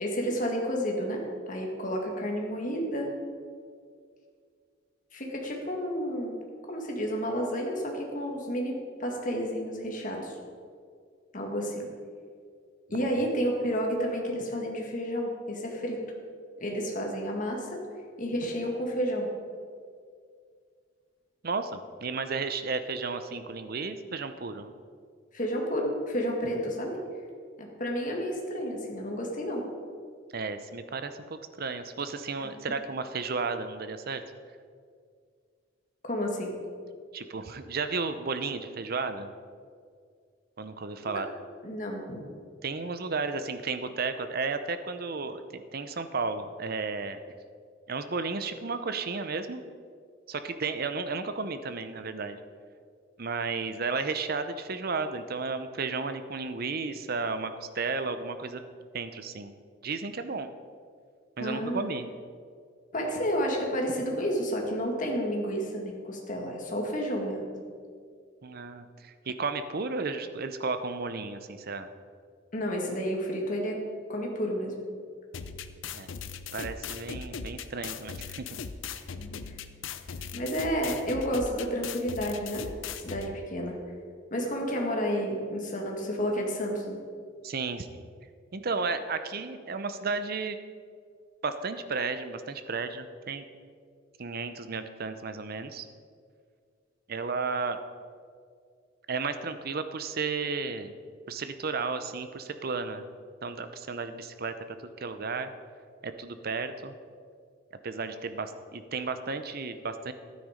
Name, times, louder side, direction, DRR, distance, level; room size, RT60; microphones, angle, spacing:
voice 1, 0.0-3.1 5.1-6.4 6.7-10.4 11.3-11.8 12.9-16.0 16.6-17.8 18.2-19.3 25.3-27.0 27.6-29.6 36.0-36.6 41.0-41.1 41.6-42.2 61.4-61.9 62.9-67.6 72.5-73.8 74.1-74.8 79.2-79.4 80.3-82.7 82.9-83.8 84.3-87.0, equal, 40° left, 0 dB, 1.9 m, -31 dB
voice 2, 13.0-13.3 21.4-24.7 30.3-34.2 37.1-39.3 40.6-41.3 42.6-47.2 47.9-49.6 50.3-52.4 53.2-58.6 58.9-59.5 59.8-60.5 61.4-62.1 68.4-71.9 75.9-76.1 76.5-78.6 87.4-88.0 88.5-90.6 91.4-93.4 94.2-95.9 97.1-97.8 99.1-100.9 101.3-103.0 103.4-104.5 104.8-105.5 106.0-107.0 107.8-110.1, right 4 dB, 50° right, 10 dB, 0.7 m, -33 dB
sound 1, 75.3-83.3, left 6 dB, 75° left, 0.6 m, -39 dB
12.0 x 9.5 x 5.1 m, 2.1 s
head